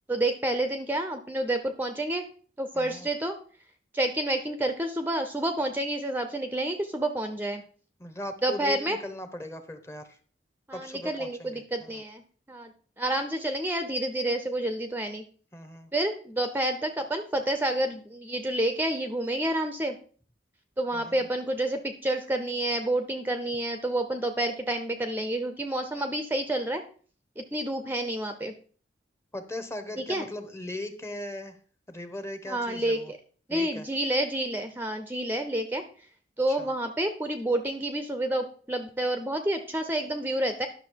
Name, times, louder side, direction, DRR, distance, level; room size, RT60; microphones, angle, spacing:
voice 1, 0.1-2.2 2.6-3.3 3.9-7.6 8.4-9.0 10.7-12.2 12.5-12.7 13.0-15.2 15.9-20.0 20.8-26.8 27.4-28.5 30.1-30.3 32.5-33.2 33.5-35.8 36.4-40.7, right 1 dB, 10° right, 7 dB, 0.7 m, -29 dB
voice 2, 2.7-3.1 8.0-10.2 10.7-12.0 15.5-15.9 20.9-21.3 29.3-31.6 31.9-33.1 33.5-33.9 36.5-36.7, left 1 dB, 15° left, 9 dB, 1.0 m, -39 dB
10.5 x 6.3 x 4.6 m, 0.42 s
head